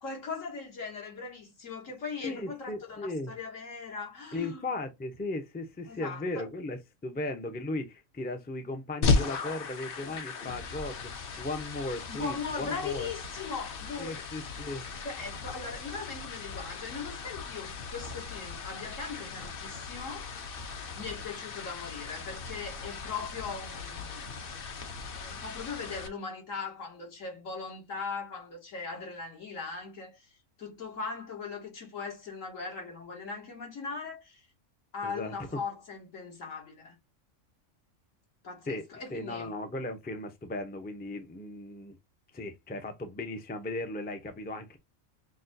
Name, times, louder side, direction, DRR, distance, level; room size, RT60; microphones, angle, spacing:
voice 1, 0.0-4.7 5.9-6.5 12.1-14.6 15.0-20.3 21.0-24.3 25.0-34.5 34.9-37.0 38.4-39.5, left 5 dB, 80° left, 1.9 m, -39 dB
voice 2, 2.2-3.3 4.3-13.1 14.0-15.0 35.0-35.3 38.7-38.8 39.1-42.0 42.3-44.8, left 2 dB, 15° left, 0.4 m, -37 dB
sound 1, 9.0-26.1, left 4 dB, 55° left, 0.8 m, -36 dB
6.0 x 2.2 x 2.6 m
omnidirectional pair, 1.3 m